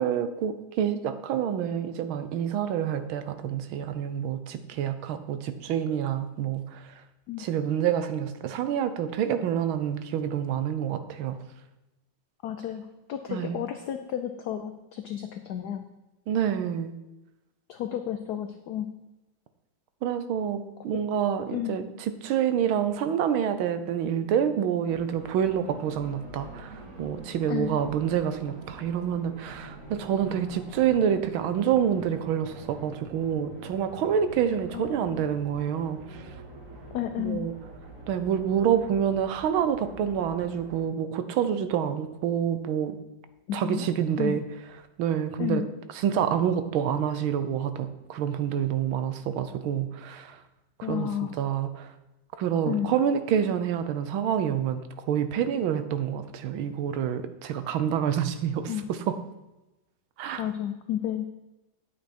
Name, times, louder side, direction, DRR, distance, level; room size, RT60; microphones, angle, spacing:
voice 1, 0.0-6.9 7.4-11.4 13.3-13.6 16.3-16.9 20.0-36.3 37.2-37.5 38.1-43.0 43.5-44.4 45.0-45.6 46.0-50.4 50.8-51.9 52.4-58.7 60.2-60.4, right 8 dB, 85° right, 10 dB, 1.6 m, -27 dB
voice 2, 12.4-15.8 17.7-18.9 21.5-21.8 27.5-27.7 34.7-35.3 36.9-37.4 43.5-43.9 44.2-44.4 45.4-45.6 50.8-51.4 52.7-52.9 58.7-58.8 60.4-61.2, left 11 dB, 70° left, 7 dB, 1.0 m, -32 dB
sound 1, 24.9-40.8, right 1 dB, 40° right, 2.1 m, -45 dB
9.5 x 8.7 x 4.3 m, 1.0 s
omnidirectional pair, 2.2 m